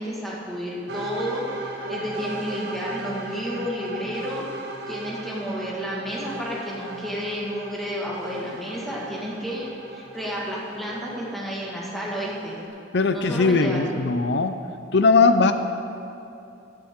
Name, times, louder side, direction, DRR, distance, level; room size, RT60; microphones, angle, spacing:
voice 1, 0.0-1.4 1.9-4.4 4.9-12.6 13.1-14.0, equal, ahead, -5 dB, 1.9 m, -31 dB
sound 1, 0.9-12.7, right 2 dB, 60° right, 1.3 m, -37 dB
voice 2, 12.9-14.6 14.9-15.5, left 4 dB, 65° left, 9 dB, 0.6 m, -19 dB
16.0 x 9.1 x 3.8 m, 2.7 s
head